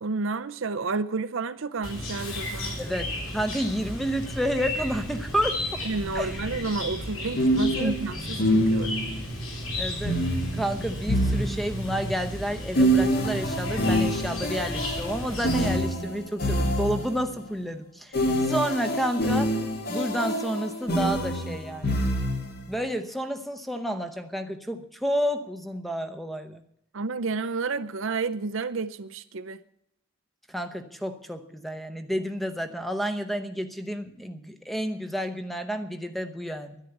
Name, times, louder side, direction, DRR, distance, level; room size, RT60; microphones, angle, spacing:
voice 1, 0.0-2.8 5.9-8.9 26.9-29.6, right 4 dB, 65° right, 0.6 m, -30 dB
Chirp tweet, 1.8-15.8, left 1 dB, 75° left, 4.0 m, -34 dB
voice 2, 2.8-5.9 6.1-6.4 7.8-7.9 9.8-10.2 10.5-19.6 19.9-22.0 22.7-26.6 30.5-36.8, equal, ahead, 0.8 m, -30 dB
sound 1, 6.3-6.5 7.4-9.2 10.0-12.0 12.7-17.3 18.1-22.6, equal, 45° left, 1.8 m, -26 dB
11.0 x 10.0 x 7.9 m
head